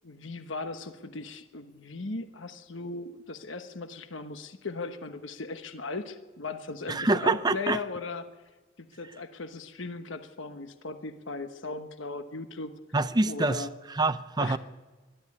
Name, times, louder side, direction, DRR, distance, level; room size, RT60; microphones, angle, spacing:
voice 1, 0.0-8.2 8.8-12.7 13.3-13.7 14.4-14.6, left 3 dB, 70° left, 1.2 m, -37 dB
voice 2, 6.9-7.8 12.9-14.6, right 2 dB, 20° right, 0.5 m, -26 dB
22.0 x 12.5 x 9.7 m
head